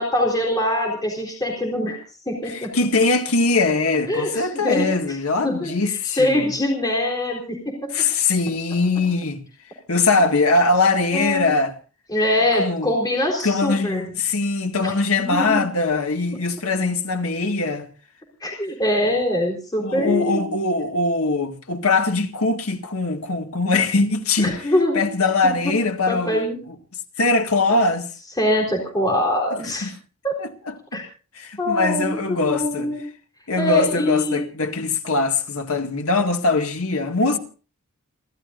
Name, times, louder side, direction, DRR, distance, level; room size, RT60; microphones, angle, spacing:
voice 1, 0.0-2.7 4.1-7.9 11.1-11.6 12.1-14.0 14.8-15.7 18.4-20.5 24.4-25.1 25.6-25.7 26.1-26.6 27.7-27.8 28.4-29.9 30.2-30.4 30.9-31.0 31.6-33.0 33.5-34.4 37.3-37.4, left 1 dB, 20° left, 4.1 m, -23 dB
voice 2, 2.5-6.5 7.9-9.4 9.9-11.7 12.6-12.9 13.4-17.9 19.8-24.6 24.9-26.8 27.2-28.1 29.8-29.9 30.4-30.5 30.9-31.0 31.4-32.9 33.5-37.4, left 3 dB, 75° left, 2.0 m, -21 dB
29.0 x 13.5 x 2.6 m
head